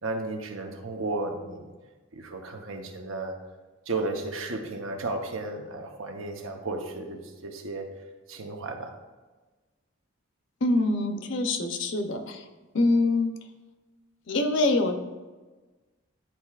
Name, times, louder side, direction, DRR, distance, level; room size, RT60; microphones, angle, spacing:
voice 1, 0.0-1.7 2.1-3.4 3.9-7.9 8.3-9.0, right 2 dB, 85° right, 3 dB, 0.9 m, -34 dB
voice 2, 10.6-12.4 12.7-13.3 14.3-14.9, left 2 dB, 65° left, 7 dB, 0.6 m, -24 dB
10.0 x 4.5 x 2.4 m, 1.3 s
head